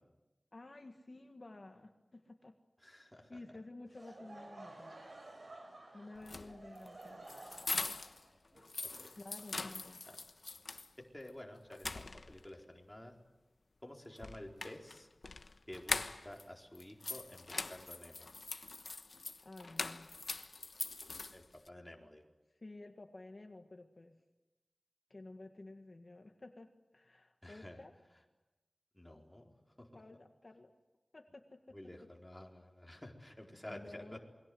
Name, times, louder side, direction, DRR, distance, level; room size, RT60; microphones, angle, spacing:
voice 1, 0.5-2.6 3.3-4.9 5.9-7.3 9.2-10.0 19.4-20.1 22.5-24.2 25.1-27.9 29.9-30.7 31.1-31.8 33.7-34.2, left 2 dB, 55° left, 4 dB, 1.7 m, -52 dB
voice 2, 2.8-3.4 6.3-6.6 9.0-9.1 10.1-10.2 11.0-13.1 13.8-15.1 15.7-18.3 21.3-22.3 27.4-27.8 28.9-30.0 31.7-34.2, left 1 dB, 10° left, 0 dB, 4.3 m, -51 dB
Laughter / Crowd, 3.9-9.8, right 2 dB, 70° right, 5.7 m, -53 dB
sound 1, 6.2-8.2 8.6-10.9 11.3-11.4 11.7-12.5 14.2-16.4 16.7-21.7, left 3 dB, 70° left, 1.2 m, -42 dB
28.0 x 22.0 x 7.9 m, 1.1 s
wide cardioid pair, 75°, 0 cm